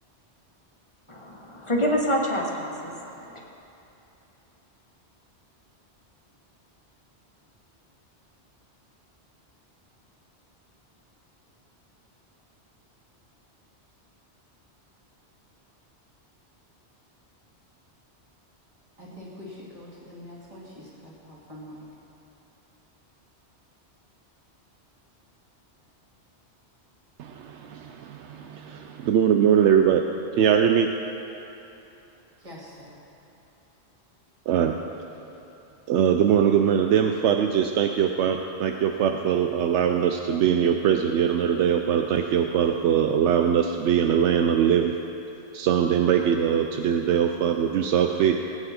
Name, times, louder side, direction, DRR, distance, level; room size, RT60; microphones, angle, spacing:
voice 1, 1.1-3.4, equal, 25° left, -2 dB, 1.5 m, -27 dB
voice 2, 19.0-21.9 32.4-33.0, left 1 dB, 30° right, -6 dB, 2.5 m, -44 dB
voice 3, 27.2-30.1 30.4-30.9 34.5-34.8 35.9-44.9 45.5-48.5, right 8 dB, 80° right, 5 dB, 0.9 m, -22 dB
19.0 x 9.0 x 4.3 m, 2.9 s
omnidirectional pair, 1.2 m